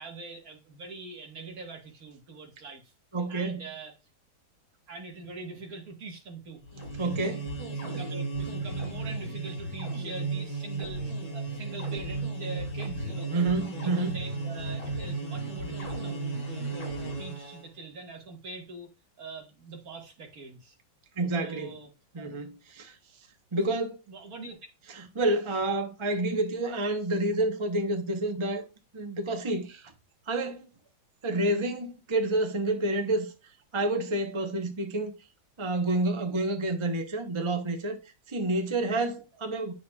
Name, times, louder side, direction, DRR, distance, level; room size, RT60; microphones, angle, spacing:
voice 1, 0.0-2.9 3.3-4.0 4.9-6.6 7.7-11.0 11.3-13.3 13.8-16.7 17.0-18.9 19.2-20.8 21.4-21.9 22.2-22.3 24.1-24.6, right 3 dB, 50° right, 1.8 m, -43 dB
voice 2, 3.1-3.6 7.0-7.5 13.3-14.1 21.2-21.7 22.1-23.0 23.5-24.0 24.9-28.6 28.9-29.9 30.3-30.7 31.2-33.3 33.7-35.1 35.6-38.0 38.3-39.7, right 2 dB, 30° right, 0.5 m, -29 dB
sound 1, 6.6-17.7, right 3 dB, 65° left, 3.8 m, -34 dB
9.4 x 6.3 x 2.3 m
omnidirectional pair, 2.2 m